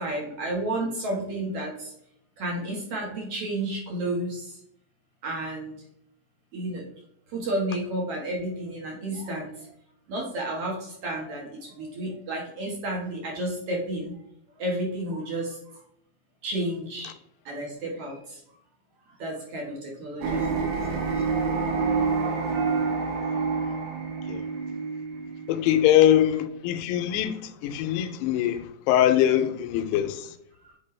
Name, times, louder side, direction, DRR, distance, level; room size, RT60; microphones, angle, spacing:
voice 1, 0.0-1.9 2.4-4.6 5.2-5.7 6.5-6.9 7.3-9.7 10.1-14.1 14.6-15.8 16.4-17.1 17.4-18.4 19.0-21.0 25.7-25.8 30.6-30.7, right 1 dB, 60° right, 1.6 m, -32 dB
sound 1, 20.2-26.5, right 4 dB, 80° right, 3.5 m, -28 dB
voice 2, 25.5-30.3, left 11 dB, 80° left, 2.5 m, -22 dB
8.1 x 4.5 x 3.2 m
omnidirectional pair, 4.9 m